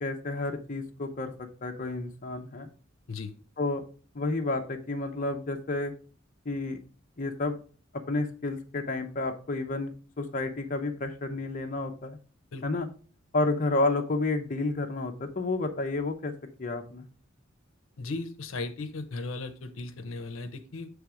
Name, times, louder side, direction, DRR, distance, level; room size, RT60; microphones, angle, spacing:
voice 1, 0.0-1.3 1.6-2.7 3.6-3.8 4.1-5.9 6.5-6.8 7.2-7.6 8.1-12.2 12.6-12.9 13.3-17.1, left 2 dB, 40° left, 4 dB, 0.6 m, -30 dB
voice 2, 18.0-20.9, left 3 dB, 75° left, 8 dB, 0.7 m, -36 dB
7.0 x 3.4 x 4.8 m, 0.39 s
head